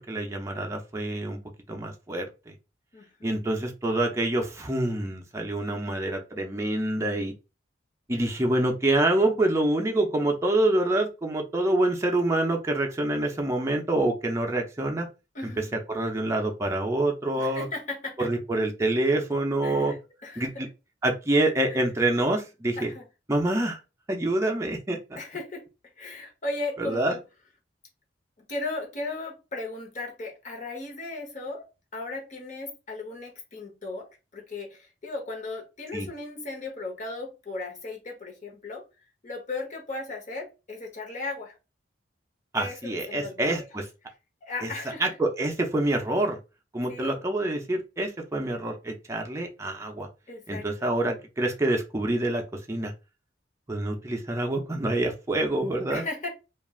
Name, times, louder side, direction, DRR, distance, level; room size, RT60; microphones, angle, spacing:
voice 1, 0.0-1.4 1.7-2.5 3.2-7.3 8.1-15.1 15.9-17.7 18.2-19.9 20.4-20.7 21.0-22.9 23.3-23.8 24.1-25.2 26.8-27.2 35.9-36.1 42.5-43.8 44.6-44.7 45.0-46.4 46.7-50.1 50.5-52.4 52.7-52.9 53.7-56.0, right 1 dB, 15° right, 0.5 m, -26 dB
voice 2, 2.9-3.4 15.3-15.8 17.4-18.3 19.6-20.7 21.7-21.8 22.8-23.1 25.2-25.7 26.0-27.2 28.5-31.7 31.9-34.1 34.3-38.8 39.2-41.5 42.5-43.7 44.4-45.1 46.9-47.2 50.3-50.7 55.9-56.3, left 3 dB, 40° left, 1.0 m, -36 dB
3.2 x 2.4 x 2.3 m
head